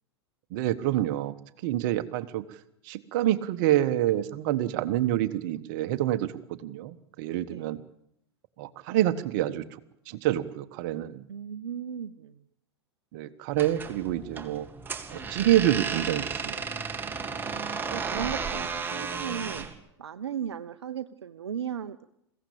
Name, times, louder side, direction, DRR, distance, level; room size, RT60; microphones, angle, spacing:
voice 1, 0.5-1.3 1.6-2.4 2.8-7.8 8.6-9.8 10.1-11.2 13.1-14.7 15.1-16.5, right 13 dB, 50° right, 13 dB, 1.3 m, -27 dB
voice 2, 7.5-7.8 11.3-12.4 17.4-19.7 20.0-22.1, right 8 dB, 75° right, 10 dB, 0.8 m, -36 dB
sound 1, 13.5-19.7, right 5 dB, 15° right, 2.1 m, -33 dB
22.0 x 16.0 x 8.7 m, 0.78 s
figure-of-eight pair, 95°, 14 cm